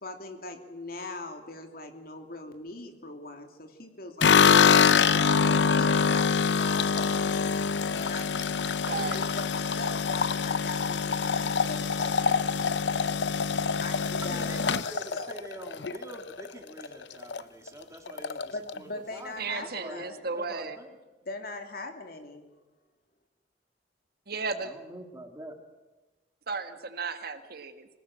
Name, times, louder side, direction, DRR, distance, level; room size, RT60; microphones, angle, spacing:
voice 1, 0.0-15.3 18.5-20.2 21.2-22.5, left 2 dB, 60° left, 5 dB, 2.8 m, -41 dB
sound 1, 4.2-16.5 16.8-17.4 17.7-17.8 18.1-18.8, left 6 dB, 85° left, 0.7 m, -25 dB
voice 2, 8.9-9.2 19.4-20.8 24.3-24.7 26.5-27.9, right 4 dB, 60° right, 8 dB, 1.7 m, -34 dB
voice 3, 14.2-20.0 20.4-21.0 24.6-25.5, right 1 dB, 20° right, 3 dB, 3.0 m, -45 dB
25.5 x 18.0 x 7.7 m, 1.2 s
head